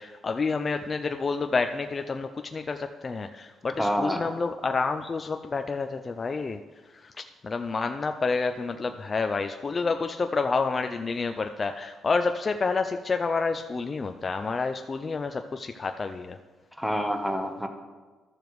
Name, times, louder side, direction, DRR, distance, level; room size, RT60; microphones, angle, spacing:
voice 1, 0.0-6.6 6.9-7.1 7.4-16.4, left 4 dB, 35° left, 6 dB, 0.4 m, -29 dB
voice 2, 3.8-4.3 16.8-17.7, equal, ahead, 5 dB, 0.9 m, -27 dB
12.5 x 6.9 x 3.1 m, 1.3 s
cardioid pair, 90°, 0 cm